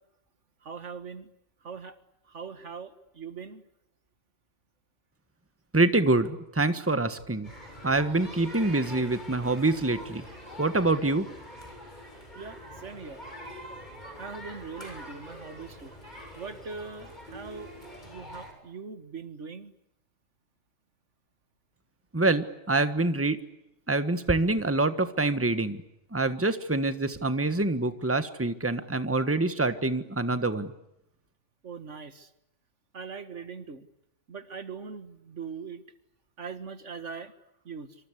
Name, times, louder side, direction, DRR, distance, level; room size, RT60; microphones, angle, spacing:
voice 1, 0.6-1.3 1.6-2.0 2.3-3.6 12.4-13.2 14.2-15.9 16.3-17.7 18.0-19.7 31.6-32.3 32.9-33.9 34.3-35.8 36.4-37.3 37.7-38.0, right 5 dB, 75° right, 11 dB, 2.1 m, -41 dB
voice 2, 5.7-7.5 7.8-10.2 10.6-11.3 22.1-23.4 23.9-25.8 26.1-30.7, right 2 dB, 10° right, 11 dB, 1.5 m, -26 dB
sound 1, 7.4-18.5, equal, 40° left, 7.4 m, -44 dB
27.0 x 26.0 x 8.3 m, 0.84 s
omnidirectional pair, 1.2 m